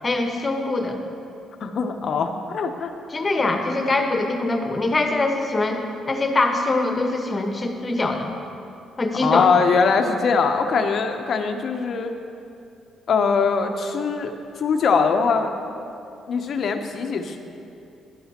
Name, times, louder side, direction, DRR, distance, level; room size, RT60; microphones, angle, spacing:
voice 1, 0.0-1.0 3.1-5.8 6.1-8.3 9.0-9.5, left 2 dB, 35° left, 4 dB, 1.2 m, -23 dB
voice 2, 1.6-2.9 9.2-12.1 13.1-15.5 16.3-17.4, left 5 dB, 60° left, 6 dB, 0.8 m, -22 dB
12.0 x 11.5 x 2.9 m, 2.7 s
supercardioid pair, 55°, 0 cm